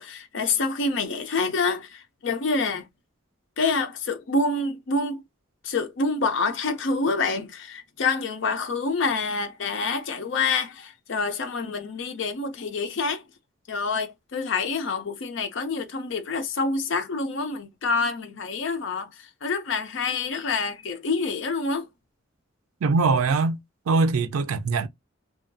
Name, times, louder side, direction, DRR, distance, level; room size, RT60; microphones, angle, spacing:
voice 1, 0.0-2.9 3.6-5.2 5.6-13.2 13.7-21.9, left 4 dB, 60° left, 0.5 m, -27 dB
voice 2, 22.8-23.6 23.9-24.9, right 4 dB, 90° right, 0.4 m, -22 dB
2.7 x 2.2 x 2.5 m
head